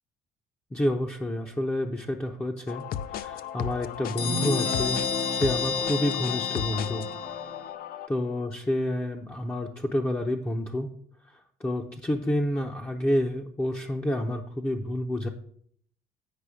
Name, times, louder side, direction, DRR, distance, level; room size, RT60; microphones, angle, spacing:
voice 1, 0.7-2.8 3.1-5.0 5.3-7.1 8.1-10.9 11.6-15.3, left 1 dB, 10° left, 1 dB, 0.6 m, -29 dB
sound 1, 2.7-8.1, left 10 dB, 60° left, 0.4 m, -36 dB
sound 2, 4.2-7.7, left 5 dB, 80° left, 1.4 m, -30 dB
8.4 x 5.2 x 5.0 m, 0.64 s
cardioid pair, 110°, 17 cm